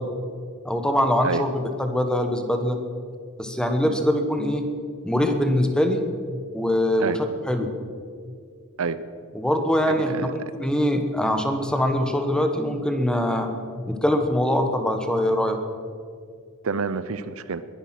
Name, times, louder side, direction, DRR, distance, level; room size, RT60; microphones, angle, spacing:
voice 1, 0.6-2.8 3.4-4.7 5.0-6.0 6.5-7.2 7.5-7.7 9.3-13.5 13.9-15.6, left 1 dB, 5° left, 6 dB, 1.3 m, -23 dB
voice 2, 9.9-10.3 16.6-17.6, right 5 dB, 75° right, 14 dB, 0.7 m, -27 dB
21.5 x 10.5 x 5.9 m, 2.2 s
head